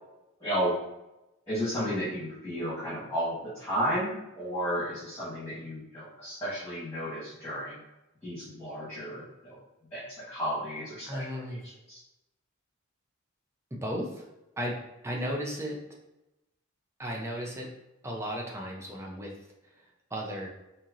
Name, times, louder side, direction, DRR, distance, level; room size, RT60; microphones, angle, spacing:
voice 1, 0.4-0.7 1.5-7.8 8.2-9.6 9.9-12.0, equal, 10° left, -11 dB, 1.4 m, -33 dB
voice 2, 11.0-11.6 13.8-14.3 14.6-14.7 15.0-15.8 17.0-17.7 18.0-19.3 20.1-20.5, equal, 15° right, -1 dB, 0.5 m, -34 dB
4.3 x 2.8 x 2.5 m, 0.95 s
head